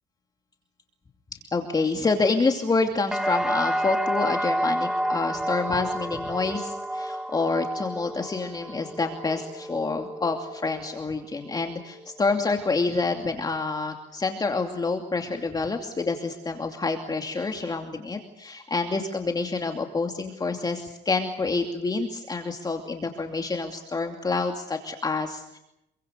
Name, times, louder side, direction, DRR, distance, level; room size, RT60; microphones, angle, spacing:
voice 1, 1.5-25.6, left 3 dB, 25° left, 4 dB, 2.7 m, -27 dB
sound 1, 3.1-11.0 11.4-12.0, equal, 5° right, 0.9 m, -30 dB
27.5 x 23.5 x 6.7 m, 0.82 s
cardioid pair, 110°, 17 cm